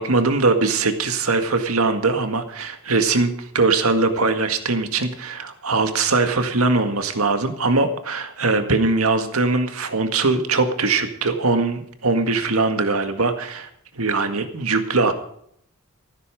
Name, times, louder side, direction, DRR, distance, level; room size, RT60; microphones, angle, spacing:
voice 1, 0.0-13.7 14.0-15.1, right 3 dB, 85° right, 7 dB, 1.9 m, -21 dB
14.0 x 12.5 x 5.1 m, 0.68 s
head